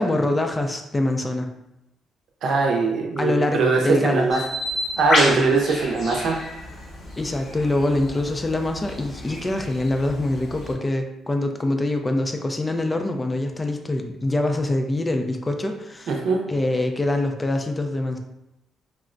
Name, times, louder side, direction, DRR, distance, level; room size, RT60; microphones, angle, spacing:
voice 1, 0.0-1.5 3.2-4.3 5.3-5.6 7.2-16.1 16.5-18.2, left 2 dB, 20° left, 4 dB, 0.4 m, -24 dB
voice 2, 2.4-4.4 5.0-6.4 16.1-16.4, right 4 dB, 70° right, 1 dB, 0.6 m, -21 dB
Bird, 4.3-10.7, left 1 dB, 60° left, 1.0 m, -29 dB
3.4 x 2.1 x 2.5 m, 0.89 s
cardioid pair, 90°, 0 cm